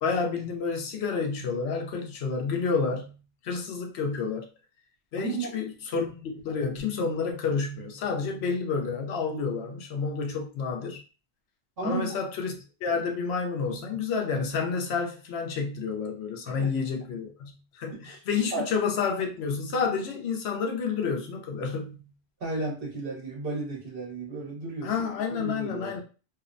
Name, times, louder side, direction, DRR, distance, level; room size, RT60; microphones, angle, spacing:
voice 1, 0.0-4.5 5.1-11.0 11.8-22.1 24.8-26.0, left 5 dB, 75° left, 2 dB, 0.8 m, -30 dB
voice 2, 5.2-5.5 11.8-12.2 16.5-16.7 18.0-18.2 18.5-18.7 22.4-24.9 25.3-26.0, right 3 dB, 60° right, -3 dB, 1.2 m, -33 dB
2.8 x 2.1 x 2.4 m, 0.34 s
omnidirectional pair, 1.1 m